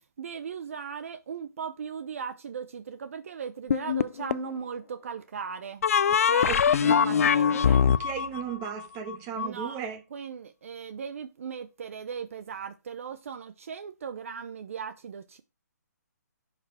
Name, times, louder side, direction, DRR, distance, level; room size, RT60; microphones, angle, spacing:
voice 1, 0.2-7.8 9.3-9.8 10.1-15.4, right 6 dB, 50° right, 0.7 m, -38 dB
sound 1, 3.7-4.5 5.8-9.5, left 7 dB, 55° left, 0.4 m, -23 dB
voice 2, 6.5-10.0, right 8 dB, 20° right, 1.5 m, -36 dB
11.0 x 5.0 x 4.9 m
hypercardioid pair, 170°, 10 cm